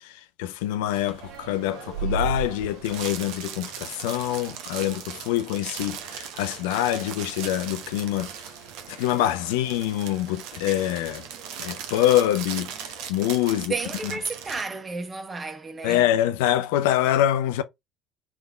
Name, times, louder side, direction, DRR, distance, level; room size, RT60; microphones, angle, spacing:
voice 1, 0.0-8.3 8.9-11.2 11.6-13.7 15.8-17.6, left 12 dB, 70° left, 0.5 m, -25 dB
sound 1, 0.9-14.6, right 6 dB, 65° right, 0.9 m, -37 dB
voice 2, 13.6-16.1, right 4 dB, 25° right, 1.0 m, -32 dB
3.5 x 3.5 x 3.3 m
hypercardioid pair, 65°, 0 cm